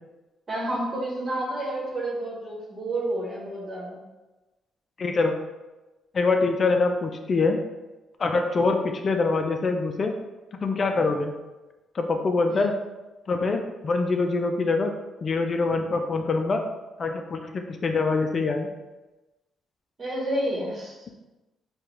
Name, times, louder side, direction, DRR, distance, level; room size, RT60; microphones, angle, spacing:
voice 1, 0.5-4.0 12.5-12.7 20.0-21.0, right 1 dB, 40° right, -3 dB, 1.1 m, -30 dB
voice 2, 5.0-5.3 6.1-7.6 8.2-10.1 10.6-11.4 11.9-12.7 13.3-14.9 15.2-16.6 17.0-18.7, left 3 dB, 40° left, 5 dB, 0.3 m, -24 dB
3.7 x 2.2 x 3.1 m, 1.1 s
cardioid pair, 90°, 0 cm